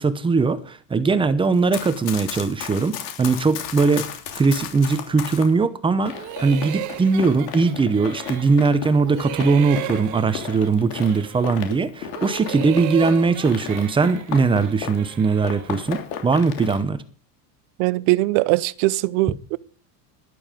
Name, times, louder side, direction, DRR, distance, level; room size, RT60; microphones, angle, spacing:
voice 1, 0.0-4.1 4.3-17.0, right 4 dB, 10° right, 0.7 m, -20 dB
Run, 1.5-5.5 6.1-15.1 15.4-16.8, left 9 dB, 80° left, 3.2 m, -34 dB
sound 1, 6.1-8.7 9.0-11.6 12.0-15.8, right 15 dB, 40° right, 1.0 m, -36 dB
voice 2, 17.8-19.6, right 20 dB, 60° right, 0.7 m, -21 dB
12.5 x 11.5 x 5.2 m
supercardioid pair, 150°, 46 cm